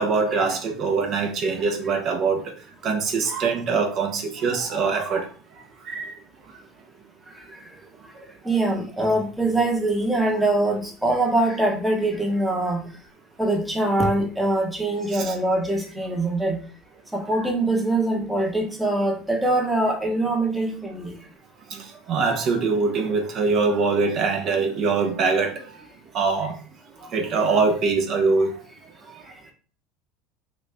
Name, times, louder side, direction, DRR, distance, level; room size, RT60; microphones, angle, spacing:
voice 1, 0.0-2.5 2.8-5.3 5.9-6.2 15.1-15.3 17.4-17.5 21.7-25.7 26.1-26.5 27.1-28.6, right 4 dB, 50° right, 0.8 m, -23 dB
voice 2, 8.4-12.9 13.4-16.6 17.1-21.2, right 2 dB, 5° right, 0.9 m, -23 dB
3.0 x 2.5 x 3.4 m
supercardioid pair, 100°, 0 cm